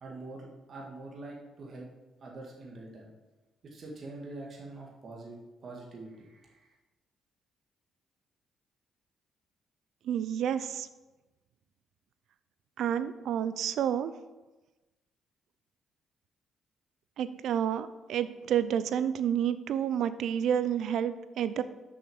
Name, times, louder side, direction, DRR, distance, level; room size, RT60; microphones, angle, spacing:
voice 1, 0.0-1.9 2.2-3.1 3.6-6.7, right 2 dB, 50° right, -2 dB, 1.9 m, -45 dB
voice 2, 10.1-10.9 12.8-14.1 17.2-21.6, right 9 dB, 75° right, 13 dB, 0.5 m, -29 dB
7.2 x 6.0 x 7.0 m, 1.1 s
cardioid pair, 90°, 0 cm